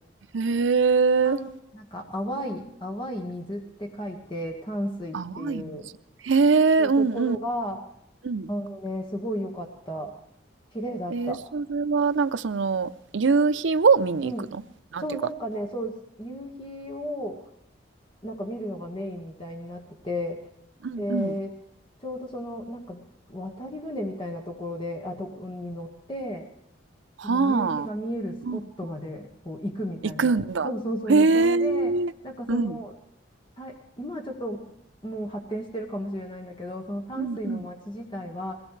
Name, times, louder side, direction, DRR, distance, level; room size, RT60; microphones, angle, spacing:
voice 1, 0.3-1.4 5.1-5.8 6.2-7.4 8.2-8.5 11.1-14.3 14.9-15.0 20.8-21.3 27.2-27.9 28.5-28.6 30.0-30.7 31.1-32.1 32.5-32.8 37.2-37.7, right 4 dB, 80° right, 0.6 m, -23 dB
voice 2, 1.7-5.9 6.8-7.8 8.5-10.1 10.7-11.4 14.2-14.5 15.0-17.4 18.2-20.4 20.9-21.6 22.0-23.0 23.3-26.5 27.2-30.4 30.6-31.9 32.2-32.9 33.6-34.8 35.0-38.6, equal, 25° left, 1.6 m, -34 dB
22.0 x 18.0 x 3.3 m
head